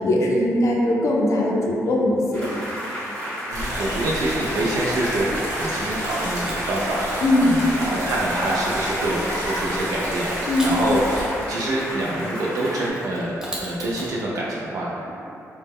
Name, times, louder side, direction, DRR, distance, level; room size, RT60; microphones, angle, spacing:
voice 1, 0.0-2.6 7.2-7.6 10.5-10.7, left 1 dB, 60° left, -2 dB, 0.4 m, -20 dB
sound 1, 2.3-12.9, equal, 20° left, 1.0 m, -32 dB
sound 2, 3.5-11.3, right 1 dB, 65° right, 0.8 m, -30 dB
voice 2, 3.5-11.0 11.5-13.3 13.6-15.1, right 1 dB, 85° right, -5 dB, 0.4 m, -26 dB
Mechanisms, 3.6-5.5 6.0-14.1, equal, 10° right, 0.5 m, -42 dB
2.1 x 2.1 x 3.3 m, 2.8 s
cardioid pair, 100°, 6 cm